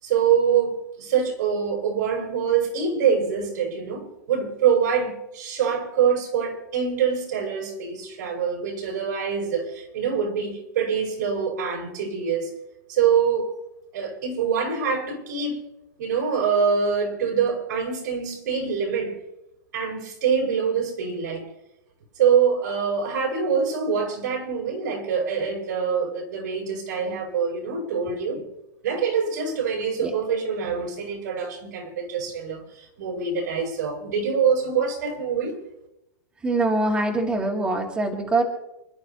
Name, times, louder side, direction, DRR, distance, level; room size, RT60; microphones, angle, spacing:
voice 1, 0.0-12.5 12.9-13.5 13.9-15.6 16.0-19.2 19.7-21.5 22.2-28.4 28.8-35.6, right 6 dB, 80° right, 1 dB, 5.4 m, -25 dB
voice 2, 36.4-38.4, right 2 dB, 10° right, 0 dB, 2.0 m, -23 dB
29.0 x 11.5 x 2.9 m, 0.90 s
supercardioid pair, 170°, 10 cm